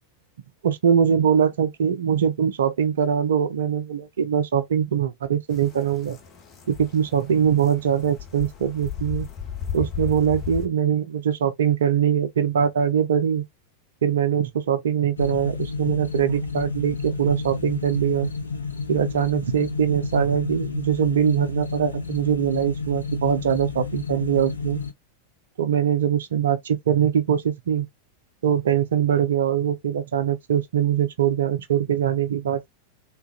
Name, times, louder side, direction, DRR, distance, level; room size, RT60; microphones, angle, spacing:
voice 1, 0.6-6.2 6.7-9.3 9.7-13.4 14.0-18.3 18.9-24.8 25.6-27.9 28.4-32.7, right 8 dB, 65° right, 0.5 m, -22 dB
sound 1, 5.5-10.7, left 8 dB, 35° left, 1.0 m, -35 dB
sound 2, 15.2-24.9, left 5 dB, 75° left, 0.5 m, -31 dB
3.5 x 2.3 x 2.4 m
figure-of-eight pair, 90°, 0 cm